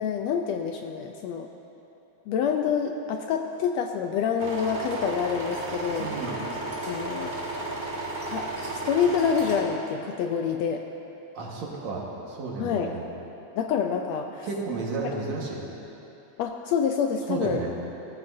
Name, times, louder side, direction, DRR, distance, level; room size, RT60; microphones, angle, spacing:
voice 1, 0.0-1.5 2.3-6.1 6.8-7.3 8.3-10.8 12.6-12.9 13.5-14.5 16.4-17.6, left 7 dB, 80° left, 4 dB, 1.6 m, -27 dB
sound 1, 4.4-9.6, right 2 dB, 25° right, 1.2 m, -33 dB
voice 2, 6.0-6.4 11.3-13.0 14.4-15.7 17.3-17.7, right 3 dB, 65° right, -3 dB, 2.7 m, -32 dB
18.0 x 14.0 x 2.7 m, 2.9 s
omnidirectional pair, 3.4 m